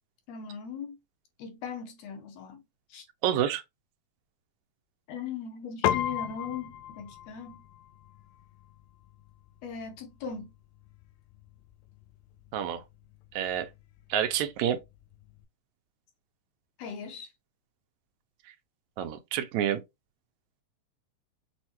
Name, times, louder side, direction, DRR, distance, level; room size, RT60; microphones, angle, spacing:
voice 1, 0.3-1.0 1.4-2.6 2.9-3.1 5.1-7.6 9.6-10.5 16.8-17.3, left 6 dB, 70° left, 1.8 m, -39 dB
voice 2, 3.2-3.6 12.5-12.8 13.3-13.7 14.1-14.8 19.0-19.8, right 10 dB, 85° right, 1.9 m, -28 dB
Piano, 5.8-15.4, left 11 dB, 90° left, 2.0 m, -38 dB
6.2 x 2.1 x 2.9 m
omnidirectional pair, 3.3 m